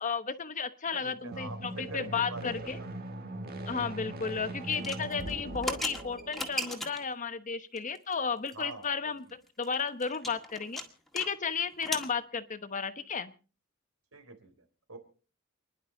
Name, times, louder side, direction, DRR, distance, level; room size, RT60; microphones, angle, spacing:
voice 1, 0.0-2.8 3.7-10.8 11.1-13.3, left 5 dB, 35° left, 11 dB, 1.0 m, -33 dB
voice 2, 0.9-2.5 2.8-2.9 4.6-5.0 8.5-9.3 14.1-15.0, right 3 dB, 80° right, 7 dB, 3.7 m, -45 dB
sound 1, 1.2-6.8, right 1 dB, 45° right, 1.7 m, -41 dB
sound 2, 4.7-7.1 7.8-8.1 8.5-8.6 8.8-8.9 9.3-11.3 11.5-12.1, equal, ahead, 1.8 m, -37 dB
29.0 x 11.0 x 3.9 m, 0.38 s
head